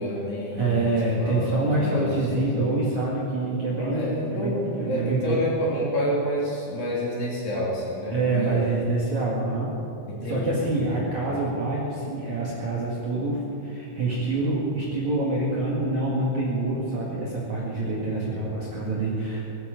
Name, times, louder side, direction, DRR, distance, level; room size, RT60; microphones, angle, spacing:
voice 1, 0.0-2.7 3.7-8.7 10.0-11.4 18.1-18.5, equal, 50° left, -5 dB, 4.4 m, -29 dB
voice 2, 0.6-5.4 8.1-9.7 10.2-19.4, right 2 dB, 50° right, -5 dB, 2.6 m, -26 dB
19.0 x 14.5 x 5.3 m, 2.6 s
omnidirectional pair, 5.8 m